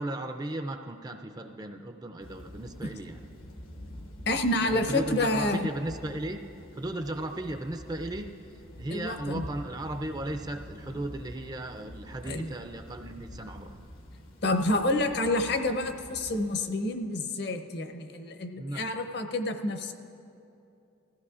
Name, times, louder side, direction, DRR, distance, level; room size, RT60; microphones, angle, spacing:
voice 1, 0.0-3.2 4.6-6.4 6.7-8.3 8.8-13.8 18.6-19.0, right 1 dB, 20° right, 6 dB, 0.4 m, -36 dB
Thunder / Rain, 2.2-16.7, equal, 85° left, 1.3 m, -46 dB
voice 2, 4.3-5.7 8.9-9.4 12.2-12.5 14.4-19.9, left 2 dB, 50° left, 6 dB, 0.7 m, -28 dB
20.0 x 15.0 x 2.5 m, 2.7 s
head